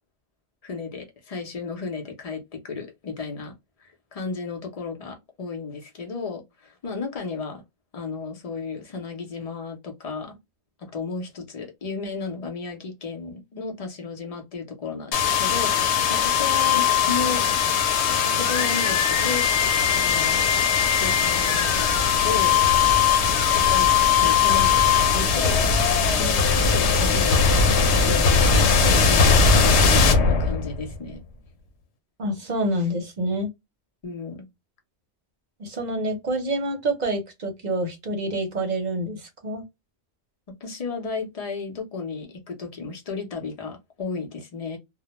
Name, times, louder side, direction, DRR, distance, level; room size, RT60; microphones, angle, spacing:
voice 1, 0.6-3.5 3.8-7.6 7.9-10.4 10.8-17.4 18.1-19.4 19.9-20.5 21.0-21.9 22.2-22.6 23.5-23.9 24.2-24.7 25.0-25.6 26.1-27.6 28.0-31.2 34.0-34.4 40.6-44.8, left 4 dB, 40° left, 0.7 m, -33 dB
sound 1, 15.1-31.0, left 6 dB, 90° left, 0.9 m, -19 dB
voice 2, 32.2-33.5 35.6-39.6, right 1 dB, 45° right, 0.8 m, -27 dB
2.1 x 2.1 x 2.9 m
omnidirectional pair, 1.1 m